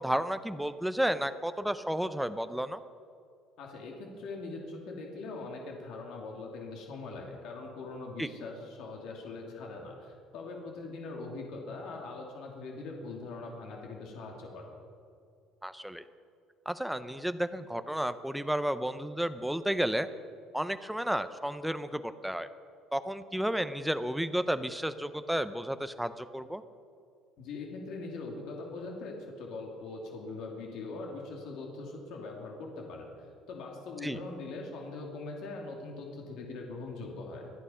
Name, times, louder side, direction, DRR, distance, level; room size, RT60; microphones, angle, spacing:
voice 1, 0.0-2.8 8.2-8.3 15.6-16.0 16.7-20.1 20.5-22.5 22.9-26.6 34.0-34.2, equal, ahead, 11 dB, 0.5 m, -32 dB
voice 2, 3.6-14.6 27.4-37.5, left 3 dB, 60° left, 0 dB, 2.6 m, -42 dB
25.0 x 8.6 x 5.6 m, 2.3 s
cardioid pair, 170°, 0 cm